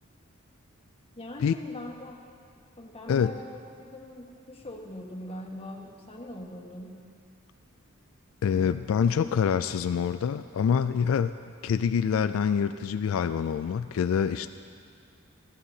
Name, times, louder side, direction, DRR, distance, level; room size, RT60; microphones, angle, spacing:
voice 1, 1.1-2.2 2.8-7.0, left 1 dB, 30° left, -2 dB, 1.4 m, -41 dB
voice 2, 8.4-11.3 11.6-14.5, left 7 dB, 90° left, 11 dB, 0.3 m, -26 dB
14.5 x 14.5 x 2.8 m, 2.2 s
head